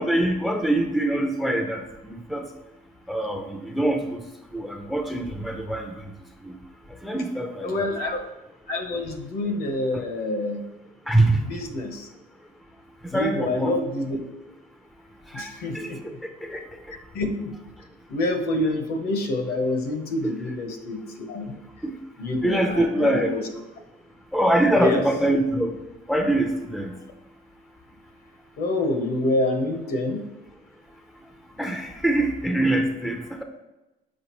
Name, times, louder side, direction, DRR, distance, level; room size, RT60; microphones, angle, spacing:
voice 1, 0.0-1.8 2.3-2.5 3.1-4.0 4.5-5.9 6.4-6.5 7.0-7.9 11.1-11.4 13.1-13.7 15.3-16.1 16.4-16.6 21.8-21.9 22.4-23.3 24.3-25.7 26.1-26.9 31.6-33.4, right 1 dB, ahead, 4 dB, 0.6 m, -24 dB
voice 2, 7.6-8.2 8.7-10.6 11.4-12.1 13.1-14.2 15.3-16.0 17.1-17.5 18.1-21.5 22.2-23.4 24.7-25.0 28.6-30.2, left 2 dB, 65° left, 5 dB, 1.0 m, -27 dB
6.5 x 4.9 x 3.1 m, 1.0 s
cardioid pair, 110°, 17 cm